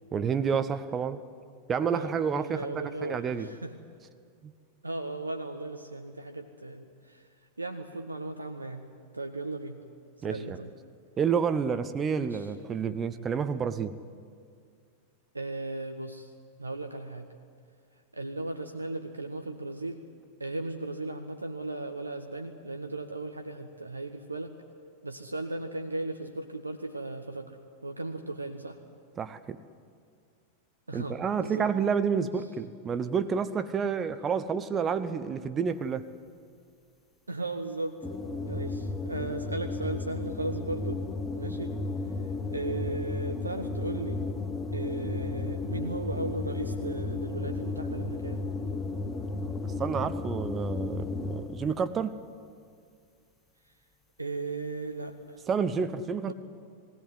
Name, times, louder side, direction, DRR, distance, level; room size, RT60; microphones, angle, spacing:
voice 1, 0.1-1.2 1.7-3.5 4.4-4.5 10.2-10.6 11.2-13.9 29.2-29.6 30.9-36.1 49.4-52.2 55.5-56.3, right 6 dB, 25° right, 11 dB, 0.8 m, -29 dB
voice 2, 1.9-3.7 4.8-7.3 7.6-8.9 9.1-9.8 10.2-10.7 12.2-12.5 15.3-16.3 16.6-17.3 18.1-20.0 20.4-24.5 25.0-28.8 30.9-31.7 32.2-32.3 37.3-38.0 38.5-41.0 41.3-41.7 42.0-44.2 44.7-48.4 54.2-55.4 55.7-55.9 56.3-56.4, right 2 dB, 80° right, 5 dB, 1.0 m, -36 dB
sound 1, 38.0-51.7, left 3 dB, 15° left, 1.5 m, -34 dB
20.0 x 17.0 x 9.5 m, 2.2 s
figure-of-eight pair, 90°, 0 cm